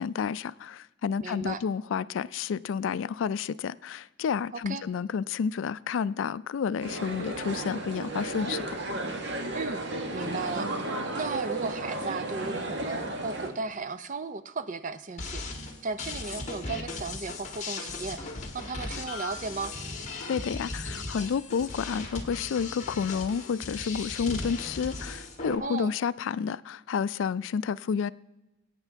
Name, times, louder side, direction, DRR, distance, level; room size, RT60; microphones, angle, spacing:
voice 1, 0.0-8.6 20.3-28.1, left 6 dB, 80° left, 0.3 m, -30 dB
voice 2, 1.2-1.6 4.5-4.9 9.5-15.4 15.8-18.3 18.5-19.7 25.6-26.0, right 4 dB, 40° right, 0.6 m, -35 dB
sound 1, 6.8-13.5, right 2 dB, 65° right, 1.5 m, -33 dB
sound 2, 15.2-25.5, left 3 dB, 40° left, 1.4 m, -37 dB
21.5 x 9.0 x 3.5 m
head